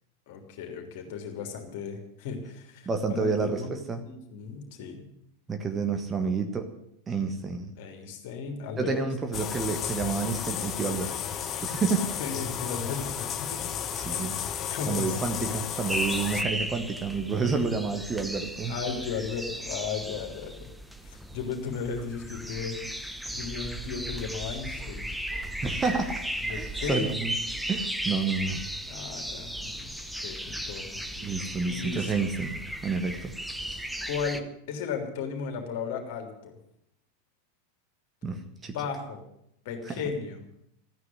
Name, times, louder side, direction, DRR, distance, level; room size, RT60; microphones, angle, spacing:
voice 1, 0.3-3.7 4.0-5.1 7.8-9.0 12.2-13.6 14.1-14.2 14.7-15.2 18.7-20.7 21.0-25.1 26.5-27.1 28.9-29.9 30.2-31.3 31.7-32.1 34.0-36.6 38.7-39.2 39.6-40.4, left 5 dB, 50° left, 4 dB, 3.3 m, -35 dB
voice 2, 2.8-4.0 5.5-6.7 7.1-7.7 8.8-11.1 11.4-12.1 13.9-14.3 14.9-18.7 25.6-27.3 27.7-28.6 31.2-33.3 38.2-38.7 39.8-40.0, right 4 dB, 20° right, 6 dB, 1.5 m, -29 dB
sound 1, 9.3-16.4, left 9 dB, 30° left, 0.9 m, -33 dB
sound 2, 15.9-34.4, right 1 dB, ahead, 1.0 m, -36 dB
14.0 x 9.7 x 9.6 m, 0.75 s
figure-of-eight pair, 90°, 0 cm